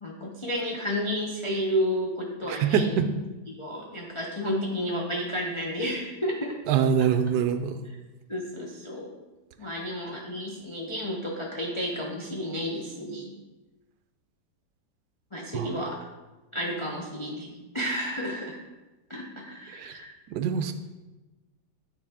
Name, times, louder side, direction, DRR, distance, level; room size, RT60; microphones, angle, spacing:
voice 1, 0.0-3.0 3.5-6.6 8.3-9.2 9.6-13.3 15.3-16.0 16.5-18.6 19.1-20.1, equal, 35° left, -3 dB, 0.4 m, -31 dB
voice 2, 2.5-3.1 6.7-7.8 15.5-15.7 19.7-19.9 20.3-20.7, right 7 dB, 75° right, 9 dB, 1.1 m, -24 dB
9.3 x 4.8 x 3.6 m, 1.1 s
omnidirectional pair, 1.9 m